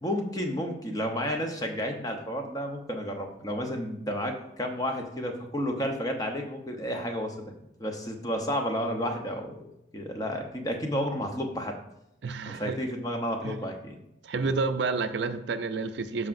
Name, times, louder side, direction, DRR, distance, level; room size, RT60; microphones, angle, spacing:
voice 1, 0.0-7.3 7.8-11.7 12.4-14.0 14.4-14.5, equal, 20° left, 3 dB, 0.8 m, -31 dB
voice 2, 12.2-12.8 13.4-13.6 14.2-16.3, right 4 dB, 60° right, 9 dB, 0.4 m, -30 dB
13.0 x 4.8 x 2.6 m, 0.84 s
head